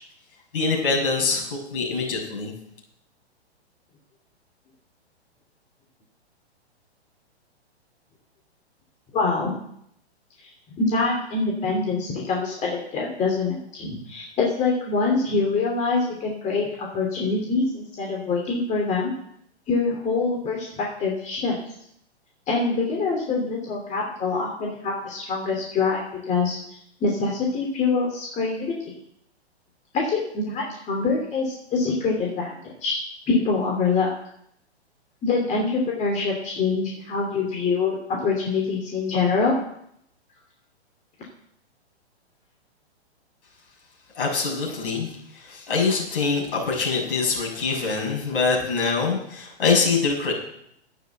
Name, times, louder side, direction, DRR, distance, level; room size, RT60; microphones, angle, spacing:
voice 1, 0.5-2.5 44.2-50.3, left 4 dB, 55° left, -1 dB, 6.7 m, -24 dB
voice 2, 9.1-9.5 10.8-19.1 19.7-21.6 22.5-26.6 27.0-28.9 29.9-33.0 33.3-34.1 35.2-37.9 38.2-39.6, left 4 dB, 20° left, -1 dB, 3.0 m, -25 dB
12.0 x 9.1 x 8.1 m, 0.72 s
figure-of-eight pair, 120°, 33 cm